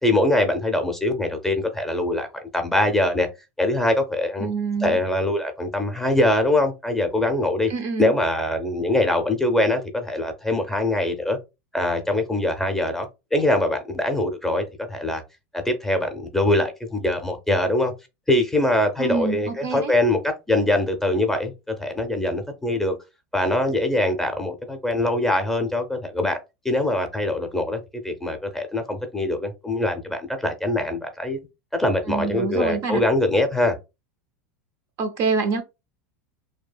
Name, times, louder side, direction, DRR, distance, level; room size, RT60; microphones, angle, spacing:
voice 1, 0.0-3.3 3.6-4.5 4.8-7.7 8.0-11.4 11.7-15.2 15.5-17.9 18.3-22.9 23.3-26.4 26.6-31.4 31.7-33.8, left 1 dB, 5° left, 0.6 m, -23 dB
voice 2, 4.4-5.0 7.7-8.1 19.0-19.9 32.1-33.0 35.0-35.6, right 4 dB, 45° right, 0.5 m, -26 dB
2.7 x 2.3 x 2.3 m
supercardioid pair, 120°, 7 cm